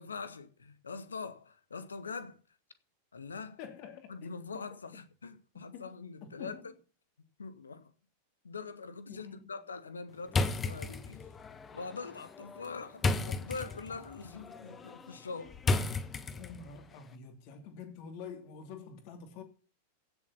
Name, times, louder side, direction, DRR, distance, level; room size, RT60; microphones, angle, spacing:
voice 1, 0.0-2.4 3.1-3.6 4.1-6.6 7.4-7.9 8.4-11.3 11.7-15.6, left 4 dB, 75° left, 1.5 m, -43 dB
voice 2, 3.6-4.6 5.7-5.9 6.2-6.7 9.1-9.5 16.3-19.4, left 6 dB, 45° left, 2.8 m, -47 dB
sound 1, 10.3-16.8, left 3 dB, 20° left, 1.4 m, -35 dB
16.0 x 7.3 x 5.7 m
figure-of-eight pair, 90°, 0 cm